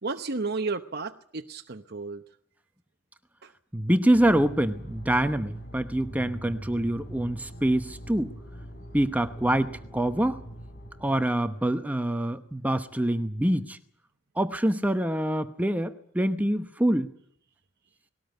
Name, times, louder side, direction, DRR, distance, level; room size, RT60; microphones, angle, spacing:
voice 1, 0.0-2.2 3.4-3.5, right 3 dB, 50° right, 5 dB, 0.9 m, -32 dB
voice 2, 3.7-8.3 8.9-10.4 11.0-13.8 14.4-17.1, right 1 dB, 5° right, 9 dB, 0.9 m, -25 dB
sound 1, 4.1-11.3, equal, 50° left, 3.4 m, -42 dB
20.0 x 18.5 x 9.3 m, 0.64 s
head